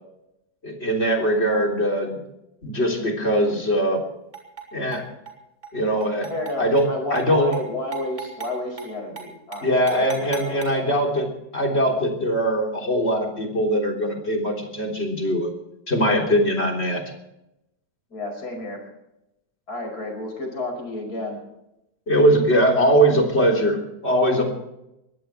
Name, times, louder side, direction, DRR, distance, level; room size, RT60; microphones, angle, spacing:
voice 1, 0.6-2.2 2.6-4.0 4.7-5.0 5.7-6.3 6.6-7.5 9.6-15.5 15.9-17.0 22.1-24.5, equal, 35° left, 1 dB, 3.8 m, -21 dB
sound 1, 4.3-4.7 4.9-5.3 5.6-5.7 6.0-6.9 7.2-7.3 7.5-7.6 7.9-8.5 8.8-8.9 9.2-9.3 9.5-10.7, right 7 dB, 25° right, 3.7 m, -36 dB
voice 2, 6.3-10.9 18.1-18.8 19.7-21.4, left 2 dB, 60° left, 3 dB, 6.1 m, -31 dB
22.0 x 16.5 x 3.4 m, 0.87 s
omnidirectional pair, 1.9 m